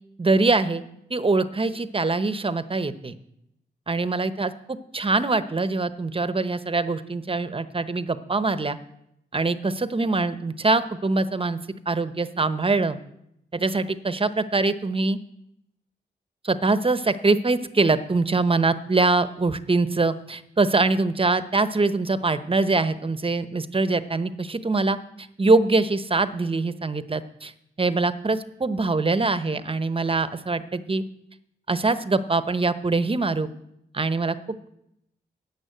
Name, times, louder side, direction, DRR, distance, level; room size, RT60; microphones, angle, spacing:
voice 1, 0.2-0.8 1.1-3.2 3.9-8.8 9.3-11.6 11.9-13.0 13.5-15.2 16.4-27.5 27.8-31.0 31.7-33.5 33.9-34.4, right 3 dB, 30° right, 12 dB, 0.9 m, -23 dB
11.0 x 8.3 x 8.2 m, 0.79 s
cardioid pair, 55°, 18 cm